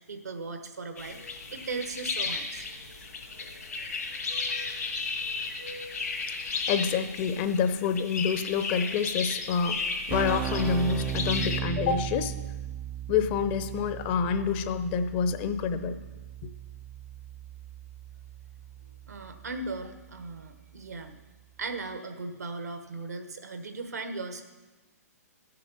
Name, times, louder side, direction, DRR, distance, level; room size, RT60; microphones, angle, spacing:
voice 1, 0.1-2.7 19.1-21.2 21.6-24.4, right 3 dB, 75° right, 7 dB, 1.3 m, -37 dB
sound 1, 1.0-11.6, left 4 dB, 75° left, 2.2 m, -34 dB
voice 2, 6.4-9.8 10.1-12.3 13.1-16.0 16.4-16.5, left 6 dB, 35° left, 10 dB, 0.8 m, -27 dB
Keyboard (musical), 9.5-9.6 9.8-20.4, right 10 dB, 15° right, 0.3 m, -37 dB
14.0 x 6.7 x 5.4 m, 1.2 s
figure-of-eight pair, 125°, 9 cm